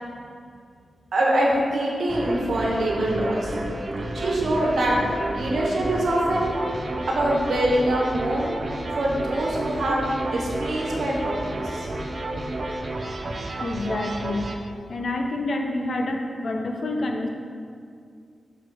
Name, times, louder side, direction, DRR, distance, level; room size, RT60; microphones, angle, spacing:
voice 1, 1.1-3.5 4.1-4.9 5.3-6.7 7.1-8.6 9.0-11.9, right 1 dB, 75° right, -3 dB, 1.3 m, -24 dB
sound 1, 2.1-14.6, right 1 dB, 40° right, 0.5 m, -31 dB
voice 2, 13.6-14.5 14.9-17.3, left 2 dB, 55° left, 3 dB, 0.6 m, -27 dB
6.0 x 6.0 x 3.5 m, 2.2 s
wide cardioid pair, 115°, 0 cm